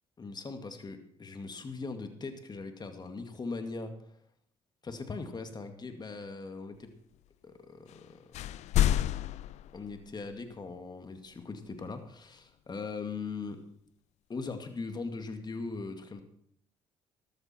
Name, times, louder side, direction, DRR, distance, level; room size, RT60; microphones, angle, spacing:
voice 1, 0.2-3.9 4.8-6.9 7.4-8.2 9.7-13.6 14.3-16.2, left 4 dB, 35° left, 7 dB, 2.3 m, -40 dB
sound 1, 7.9-8.1 8.3-10.4, left 12 dB, 70° left, 0.4 m, -29 dB
13.5 x 13.0 x 4.5 m, 0.67 s
supercardioid pair, 65°, 12 cm